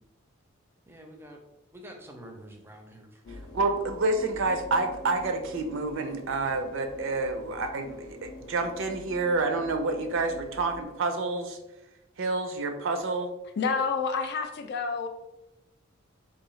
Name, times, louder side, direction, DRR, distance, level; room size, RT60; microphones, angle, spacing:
voice 1, 0.9-1.4 1.7-3.2, right 1 dB, 10° right, 3 dB, 0.5 m, -47 dB
sound 1, 3.2-10.8, left 2 dB, 75° left, 0.7 m, -45 dB
voice 2, 3.5-11.6 12.2-13.3, right 3 dB, 60° right, 6 dB, 0.5 m, -28 dB
voice 3, 13.6-15.1, left 5 dB, 50° left, 7 dB, 0.4 m, -28 dB
3.6 x 2.7 x 3.1 m, 0.95 s
head